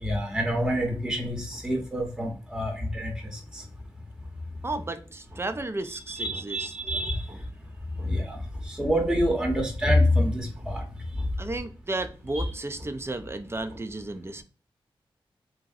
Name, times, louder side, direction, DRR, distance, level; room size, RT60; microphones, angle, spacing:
voice 1, 0.0-3.6 6.1-7.2 8.0-8.4 8.7-10.8 12.3-12.4, equal, 5° right, 0.8 m, -26 dB
voice 2, 4.6-6.7 7.3-7.4 8.0-8.2 11.2-14.4, right 2 dB, 25° right, 0.4 m, -34 dB
2.9 x 2.7 x 2.4 m
cardioid pair, 50°, 10 cm